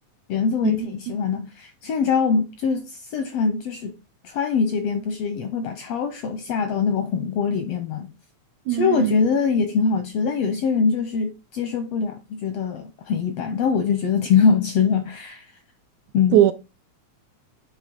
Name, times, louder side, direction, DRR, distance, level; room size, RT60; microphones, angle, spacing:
voice 1, 0.3-3.9 4.2-8.1 8.7-15.4 16.1-16.4, left 5 dB, 80° left, 1.5 m, -23 dB
voice 2, 8.7-9.1 16.3-16.5, right 13 dB, 80° right, 1.8 m, -19 dB
8.3 x 2.8 x 5.3 m
omnidirectional pair, 3.5 m